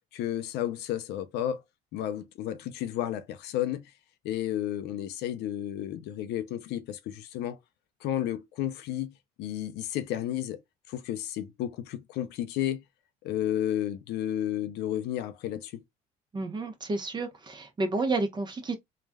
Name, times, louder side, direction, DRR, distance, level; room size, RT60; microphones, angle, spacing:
voice 1, 0.1-1.6 1.9-3.9 4.2-7.6 8.0-10.6 10.9-12.8 13.2-15.8, left 11 dB, 85° left, 0.5 m, -32 dB
voice 2, 16.3-18.7, right 3 dB, 25° right, 0.9 m, -30 dB
3.2 x 2.4 x 2.2 m
cardioid pair, 110°, 17 cm